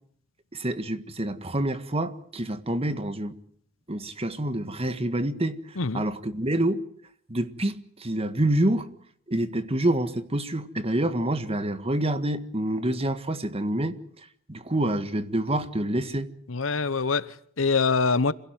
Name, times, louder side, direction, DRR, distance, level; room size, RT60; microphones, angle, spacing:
voice 1, 0.5-3.4 3.9-5.6 5.9-6.8 7.3-8.9 9.3-13.9 14.5-16.3, right 1 dB, 30° right, 1.7 m, -27 dB
voice 2, 16.5-18.3, left 4 dB, 85° left, 1.0 m, -24 dB
27.0 x 17.0 x 9.3 m
head